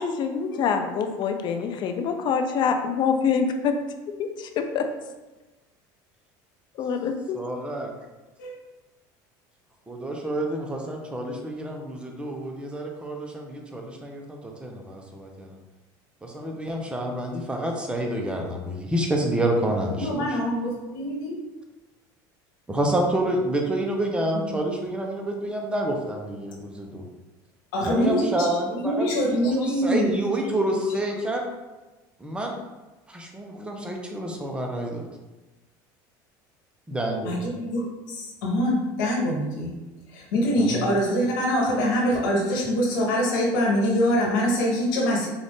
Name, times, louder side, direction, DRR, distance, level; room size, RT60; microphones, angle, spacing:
voice 1, 0.0-3.7 4.2-4.9 6.8-7.4, left 6 dB, 50° left, 6 dB, 0.5 m, -25 dB
voice 2, 7.3-7.9 9.9-15.6 16.2-20.4 22.7-27.1 27.9-29.1 29.6-31.4 32.2-32.6 33.1-35.0 36.9-37.3 40.6-40.9, right 1 dB, 10° right, 1 dB, 0.7 m, -28 dB
voice 3, 20.0-21.4 27.7-28.5 28.7-30.1 37.2-39.8 40.1-45.3, equal, 90° left, -3 dB, 1.1 m, -24 dB
3.9 x 2.5 x 3.5 m, 1.1 s
supercardioid pair, 105°, 10 cm